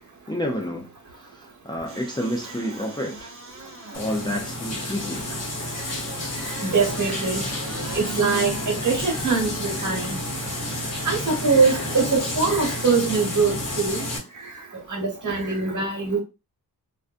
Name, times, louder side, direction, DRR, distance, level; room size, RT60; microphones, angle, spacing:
voice 1, 0.3-0.9 1.1-3.3 3.9-5.3, equal, 10° left, 0.5 m, -29 dB
sound 1, 1.8-12.3 12.8-12.9, right 2 dB, 40° right, 0.8 m, -40 dB
sound 2, 3.9-14.2, left 1 dB, 45° left, 1.0 m, -30 dB
voice 2, 6.4-7.4 7.9-10.2 11.0-14.0 14.3-14.6 14.9-16.2, right 4 dB, 55° right, 1.2 m, -23 dB
2.5 x 2.3 x 2.5 m
cardioid pair, 85°, 37 cm